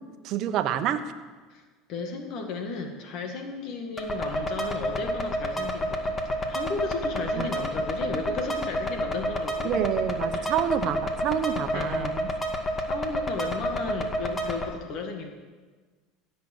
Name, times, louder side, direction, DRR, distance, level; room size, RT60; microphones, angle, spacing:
voice 1, 0.2-1.0 7.4-7.5 9.6-12.3, right 10 dB, 55° right, 10 dB, 1.1 m, -28 dB
voice 2, 1.9-9.9 10.3-10.6 11.7-12.3 12.8-15.3, left 4 dB, 60° left, 4 dB, 2.0 m, -34 dB
sound 1, 4.0-14.6, equal, 25° left, 2.0 m, -30 dB
16.0 x 6.8 x 8.0 m, 1.4 s
hypercardioid pair, 90°, 0 cm